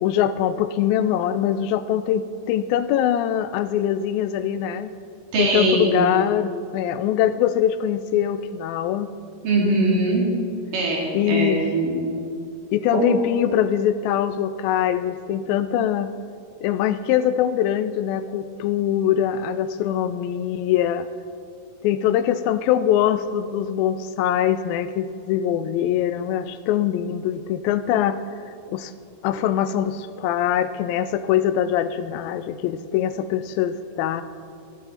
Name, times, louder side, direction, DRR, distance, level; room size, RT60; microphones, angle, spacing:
voice 1, 0.0-4.9 5.4-9.1 11.1-11.6 12.7-16.1 16.6-21.1 21.8-28.2 28.7-28.9 29.2-34.2, left 10 dB, 90° left, 12 dB, 2.4 m, -23 dB
voice 2, 5.3-5.9 9.4-10.3 10.7-12.0 12.9-13.1, right 2 dB, 70° right, -3 dB, 4.3 m, -21 dB
19.5 x 11.0 x 4.0 m, 2.4 s
omnidirectional pair, 4.1 m